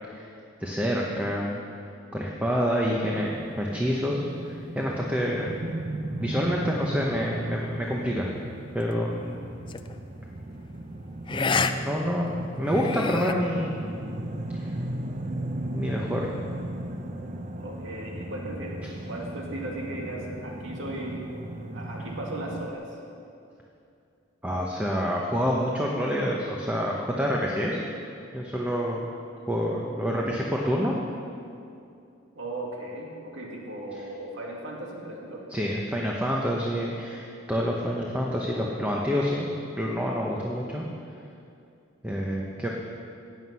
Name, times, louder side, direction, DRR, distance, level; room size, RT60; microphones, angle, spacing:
voice 1, 0.6-1.6 2.1-5.5 6.2-8.3 8.7-9.3 11.3-13.7 14.5-14.7 15.7-16.2 24.4-27.8 28.3-29.0 29.5-30.9 35.5-39.5 39.8-40.9 42.0-42.7, equal, 5° right, -3 dB, 1.0 m, -27 dB
sound 1, 3.1-22.7, right 1 dB, 35° right, 0.7 m, -36 dB
sound 2, 9.7-9.9 11.3-11.7 12.1-12.2 12.7-13.3, left 5 dB, 25° left, 0.4 m, -27 dB
voice 2, 17.6-18.8 19.1-21.2 21.7-23.0 32.4-35.5, right 1 dB, 70° right, -2 dB, 2.2 m, -37 dB
15.5 x 9.5 x 5.7 m, 2.5 s
head